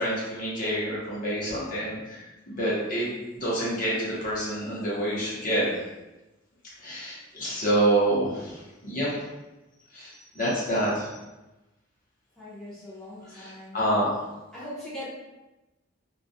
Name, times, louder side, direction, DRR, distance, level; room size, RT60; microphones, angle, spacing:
voice 1, 0.0-5.8 6.8-9.1 9.9-11.2 13.3-14.1, right 1 dB, 40° left, -7 dB, 0.7 m, -27 dB
voice 2, 12.4-13.8 14.5-15.1, left 1 dB, ahead, -11 dB, 0.7 m, -40 dB
2.2 x 2.2 x 2.6 m, 1.0 s
head